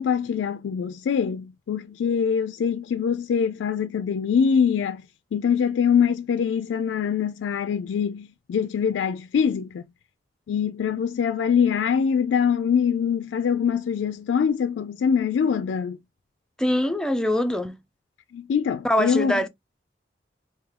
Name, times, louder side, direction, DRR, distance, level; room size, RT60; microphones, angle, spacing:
voice 1, 0.0-5.0 5.3-9.8 10.5-16.0 18.3-19.4, left 7 dB, 85° left, 0.3 m, -23 dB
voice 2, 16.6-17.8 18.8-19.5, left 1 dB, 5° left, 0.4 m, -23 dB
3.6 x 2.7 x 3.2 m
head